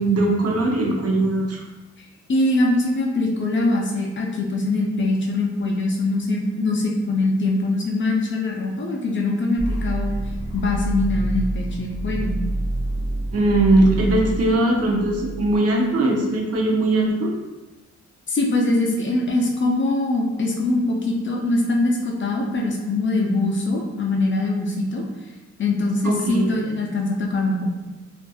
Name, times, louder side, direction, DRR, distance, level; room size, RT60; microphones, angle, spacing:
voice 1, 0.0-1.6 13.3-17.3 26.0-26.4, right 2 dB, 55° right, -1 dB, 0.5 m, -20 dB
voice 2, 2.3-10.2 10.5-12.4 18.3-25.0 25.6-27.7, left 2 dB, 40° left, 0 dB, 0.4 m, -22 dB
sound 1, 9.6-15.6, right 1 dB, 80° right, 0.9 m, -27 dB
2.7 x 2.5 x 2.2 m, 1.1 s
wide cardioid pair, 135°, 29 cm